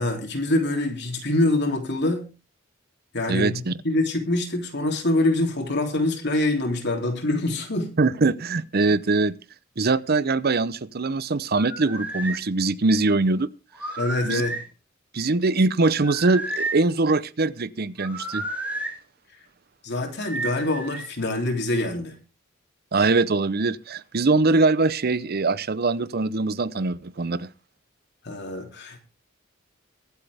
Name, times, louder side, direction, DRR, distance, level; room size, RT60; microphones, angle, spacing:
voice 1, 0.0-2.3 3.1-8.0 14.0-14.6 19.8-22.1 28.2-29.0, left 2 dB, 55° left, 3.1 m, -25 dB
voice 2, 3.3-3.7 8.0-9.3 9.8-13.5 14.2-14.4 15.1-18.4 22.9-27.5, right 3 dB, 50° right, 0.7 m, -22 dB
sound 1, 11.6-12.4 13.7-14.7 16.0-16.8 18.0-18.9 20.3-21.1, right 2 dB, 10° right, 2.7 m, -31 dB
23.5 x 8.0 x 3.5 m
head